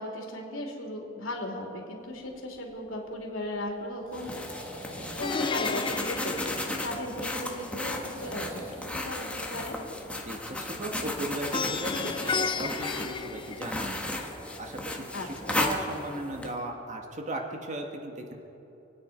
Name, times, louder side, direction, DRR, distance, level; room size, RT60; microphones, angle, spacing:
voice 1, 0.0-4.4 4.8-9.8 15.1-15.6, left 1 dB, 90° left, 0 dB, 3.3 m, -37 dB
sound 1, 2.0-14.2, right 1 dB, 80° right, 2.4 m, -48 dB
sound 2, 4.1-16.5, left 1 dB, 5° left, 1.5 m, -35 dB
Plucked string instrument, 5.2-7.4 11.5-14.1, left 5 dB, 25° left, 0.4 m, -33 dB
voice 2, 10.2-14.0 14.3-18.3, right 1 dB, 40° right, 2 dB, 1.6 m, -37 dB
28.5 x 9.5 x 5.2 m, 3.0 s
head